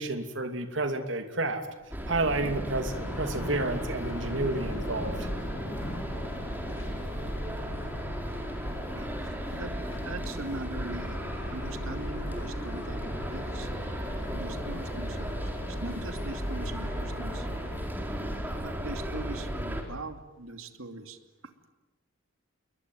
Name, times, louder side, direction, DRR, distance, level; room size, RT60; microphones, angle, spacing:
voice 1, 0.0-1.6 2.1-5.3, right 2 dB, 60° right, 7 dB, 2.9 m, -30 dB
Thunder / Rain, 1.8-10.4, equal, 30° left, 2.2 m, -44 dB
sound 1, 1.9-19.8, equal, 10° right, 3.9 m, -35 dB
sound 2, 2.9-17.9, left 2 dB, 75° left, 1.5 m, -44 dB
voice 2, 10.0-13.7 14.3-17.5 18.5-21.5, right 2 dB, 85° right, 8 dB, 2.6 m, -41 dB
28.0 x 22.5 x 9.1 m, 1.1 s
head